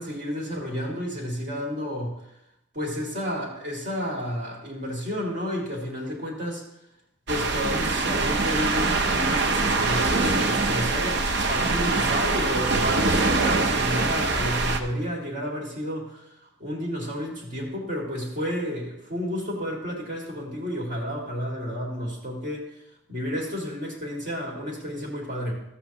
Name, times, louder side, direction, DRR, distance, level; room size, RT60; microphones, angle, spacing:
voice 1, 0.0-2.2 2.7-6.6 7.3-22.7 23.1-25.6, equal, 40° right, -2 dB, 2.3 m, -31 dB
sound 1, 7.3-14.8, right 3 dB, 55° right, 0.7 m, -24 dB
13.5 x 7.9 x 3.0 m, 0.82 s
head